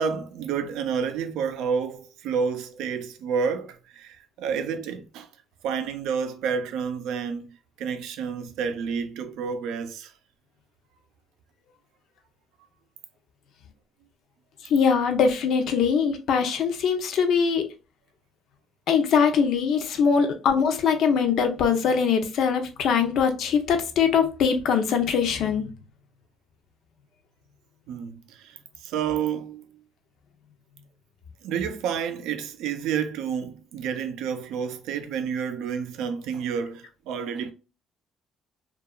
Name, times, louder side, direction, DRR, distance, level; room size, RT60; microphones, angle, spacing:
voice 1, 0.0-5.3 5.6-7.5 7.8-10.1 27.9-28.5 28.8-29.6 31.4-37.5, right 6 dB, 85° right, 0.4 m, -29 dB
voice 2, 14.7-17.7 18.9-25.7, left 6 dB, 65° left, 0.5 m, -22 dB
2.8 x 2.3 x 2.3 m
cardioid pair, 135°, 0 cm